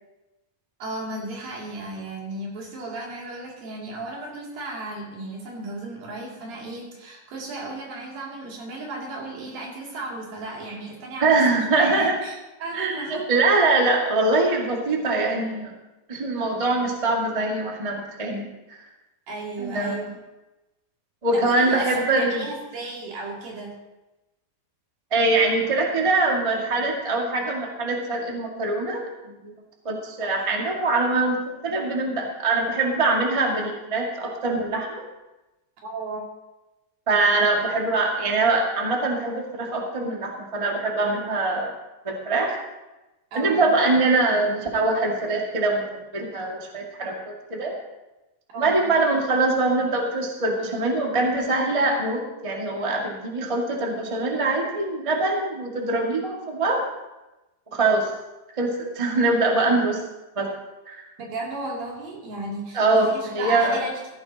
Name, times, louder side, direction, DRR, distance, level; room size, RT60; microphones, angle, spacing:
voice 1, 0.8-11.4 11.7-12.4 12.6-13.2 19.3-20.1 21.3-23.7 35.8-36.2 43.3-43.7 48.5-48.8 61.2-64.0, right 2 dB, 80° right, -3 dB, 4.6 m, -34 dB
voice 2, 11.2-12.2 12.7-15.7 16.1-18.5 19.6-20.0 21.2-22.4 25.1-29.5 29.8-35.0 37.1-41.7 42.0-42.6 43.3-45.8 46.1-47.7 48.5-56.8 57.7-58.1 58.6-60.0 60.3-60.5 60.9-61.0 62.7-63.8, right 2 dB, 15° right, -1 dB, 1.1 m, -23 dB
15.5 x 15.5 x 2.9 m, 1.0 s
omnidirectional pair, 4.0 m